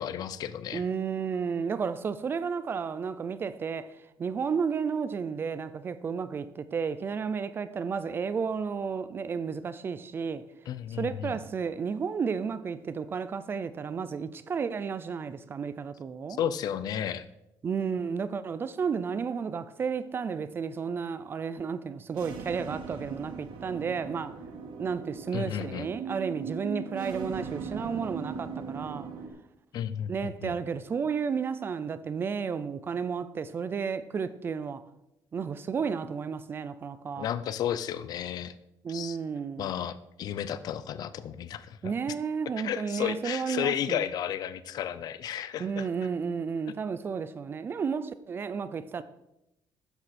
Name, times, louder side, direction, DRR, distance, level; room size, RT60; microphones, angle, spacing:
voice 1, 0.0-0.8 10.7-11.4 16.4-17.3 25.3-25.9 29.7-30.5 37.2-38.5 38.9-39.2 39.6-41.9 42.6-45.9, left 9 dB, 55° left, 0.6 m, -33 dB
voice 2, 0.7-3.9 4.2-10.4 10.9-16.4 17.6-24.4 24.8-29.1 30.1-34.8 35.3-37.3 38.8-39.7 41.8-44.0 45.6-49.0, right 6 dB, 25° right, 0.5 m, -32 dB
sound 1, 22.1-29.3, right 5 dB, 80° right, 1.8 m, -39 dB
12.5 x 9.9 x 4.3 m
cardioid pair, 180°, 8 cm